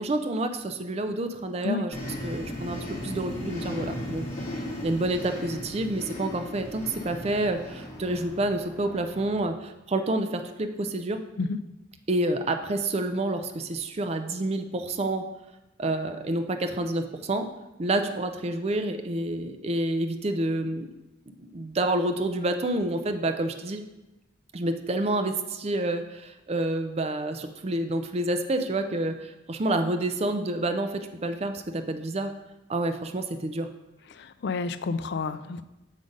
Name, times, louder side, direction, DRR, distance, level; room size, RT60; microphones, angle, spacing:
voice 1, 0.0-4.2 4.8-11.2 12.1-15.2 15.8-17.5 17.8-20.9 21.4-23.8 24.5-32.3 32.7-33.7, right 2 dB, 30° right, 7 dB, 0.4 m, -28 dB
sound 1, 1.9-8.3, left 1 dB, 35° left, 1.7 m, -36 dB
sound 2, 6.6-9.8, equal, ahead, 0.8 m, -48 dB
voice 2, 34.1-35.6, left 4 dB, 55° left, 12 dB, 0.4 m, -30 dB
7.3 x 3.8 x 5.2 m, 0.98 s
head